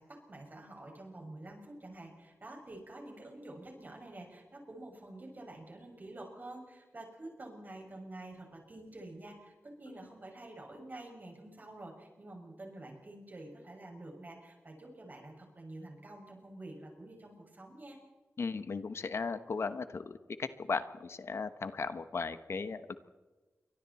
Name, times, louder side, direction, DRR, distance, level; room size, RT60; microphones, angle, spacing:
voice 1, 0.0-18.0, right 1 dB, 40° right, 1 dB, 6.3 m, -48 dB
voice 2, 18.4-22.9, left 4 dB, 65° left, 11 dB, 1.1 m, -37 dB
28.5 x 24.0 x 4.3 m, 1.3 s
wide cardioid pair, 90°, 5 cm